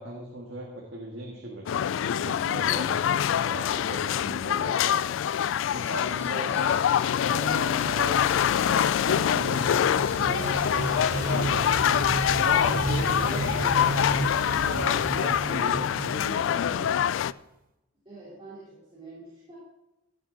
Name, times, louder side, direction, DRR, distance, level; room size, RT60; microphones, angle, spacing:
voice 1, 0.0-5.0 5.7-13.7 14.6-17.1, right 1 dB, 65° right, -1 dB, 1.8 m, -39 dB
sound 1, 1.7-17.3, left 9 dB, 75° left, 0.3 m, -25 dB
sound 2, 5.8-13.1, equal, 10° left, 3.0 m, -45 dB
sound 3, 8.8-17.3, right 2 dB, 45° right, 0.6 m, -33 dB
voice 2, 13.2-13.8 18.0-19.6, right 2 dB, 25° right, -10 dB, 4.0 m, -44 dB
16.0 x 8.2 x 4.0 m, 0.93 s
head